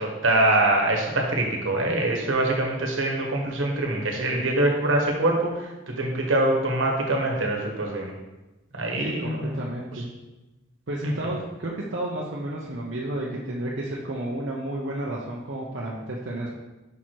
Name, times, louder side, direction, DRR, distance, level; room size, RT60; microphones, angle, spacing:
voice 1, 0.0-8.1 8.7-9.6 11.0-11.1, right 2 dB, 80° right, 0 dB, 1.3 m, -24 dB
voice 2, 9.0-10.1 10.9-16.5, right 1 dB, 60° right, -4 dB, 0.8 m, -31 dB
5.7 x 4.6 x 4.5 m, 1.1 s
head